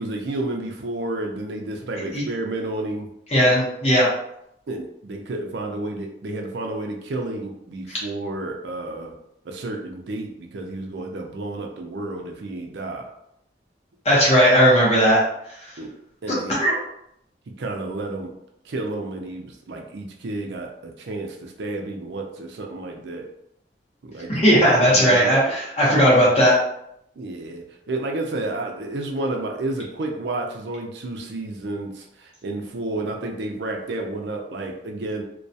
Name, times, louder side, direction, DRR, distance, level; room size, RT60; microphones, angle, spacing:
voice 1, 0.0-3.1 4.7-9.1 9.4-13.1 15.8-15.9 16.2-16.6 17.6-18.3 18.6-23.3 24.0-25.3 27.2-35.2, right 2 dB, 75° right, 2 dB, 0.4 m, -31 dB
voice 2, 3.3-4.1 14.0-15.2 16.5-16.7 24.3-26.5, equal, 35° left, -6 dB, 0.8 m, -17 dB
2.3 x 2.2 x 2.6 m, 0.77 s
head